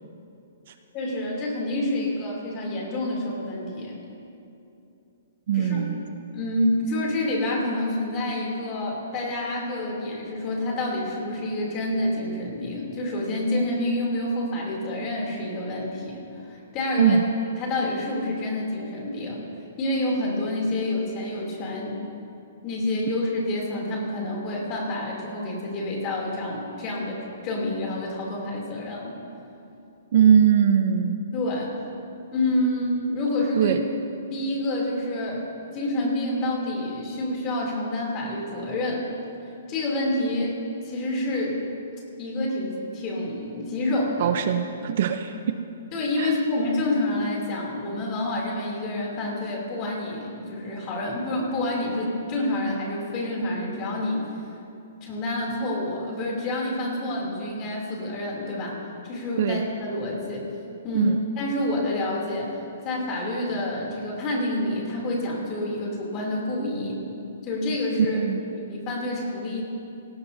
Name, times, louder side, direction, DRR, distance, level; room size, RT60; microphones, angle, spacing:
voice 1, 0.9-4.0 5.5-5.9 6.3-17.2 17.5-19.4 19.8-22.0 22.6-27.2 27.4-29.2 31.3-31.8 32.3-33.8 34.3-35.4 35.7-39.0 39.7-40.5 40.8-41.6 42.2-44.3 45.9-54.3 55.0-58.8 59.0-60.5 60.8-67.0 67.4-68.2 68.6-69.6, left 1 dB, 20° left, -2 dB, 3.0 m, -28 dB
voice 2, 5.5-6.0 17.0-17.2 30.1-31.2 33.6-33.8 44.2-45.5 46.2-46.4 59.4-59.6 60.9-61.2 68.1-68.4, right 8 dB, 45° right, 8 dB, 0.7 m, -21 dB
22.5 x 18.0 x 2.8 m, 2.8 s
hypercardioid pair, 175°, 0 cm